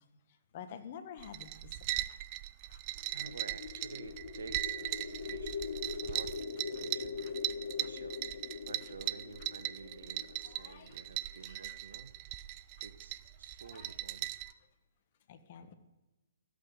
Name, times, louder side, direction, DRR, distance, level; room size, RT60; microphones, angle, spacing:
voice 1, 0.0-2.2 2.6-3.1 5.9-6.2 6.7-6.8 7.2-7.3 7.8-7.9 8.8-8.9 10.4-11.0 11.4-12.0 13.6-14.0 14.4-14.5 15.3-15.7, left 8 dB, 45° left, 11 dB, 1.5 m, -52 dB
sound 1, 1.2-14.5, right 15 dB, 35° right, 0.5 m, -39 dB
sound 2, 3.0-11.2, left 5 dB, 65° left, 1.2 m, -42 dB
voice 2, 3.1-5.6 6.0-7.2 7.8-8.2 8.6-12.2 12.8-14.3, right 4 dB, 75° right, 11 dB, 1.1 m, -50 dB
14.0 x 8.5 x 8.0 m, 1.1 s
hypercardioid pair, 130°, 0 cm